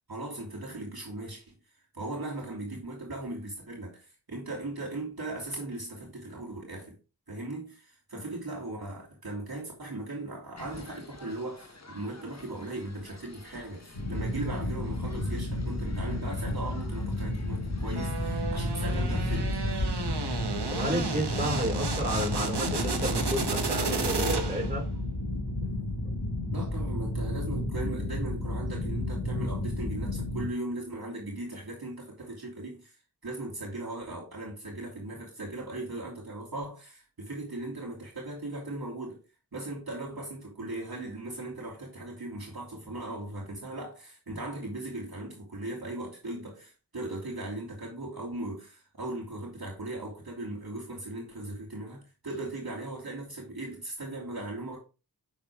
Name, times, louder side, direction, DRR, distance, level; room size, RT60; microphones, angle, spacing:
voice 1, 0.0-1.6 1.9-7.0 7.3-19.6 26.5-32.9 33.2-39.2 39.5-54.8, right 2 dB, 65° right, 2.9 m, -38 dB
sound 1, 10.6-20.1, left 1 dB, 40° left, 1.2 m, -39 dB
sound 2, 13.9-30.5, left 1 dB, 85° left, 2.0 m, -32 dB
sound 3, 18.0-24.8, right 5 dB, 85° right, 1.0 m, -33 dB
voice 2, 20.7-24.8 25.6-25.7 26.0-26.1, equal, 20° right, 3.5 m, -32 dB
7.1 x 6.0 x 3.5 m
wide cardioid pair, 40°, 40 cm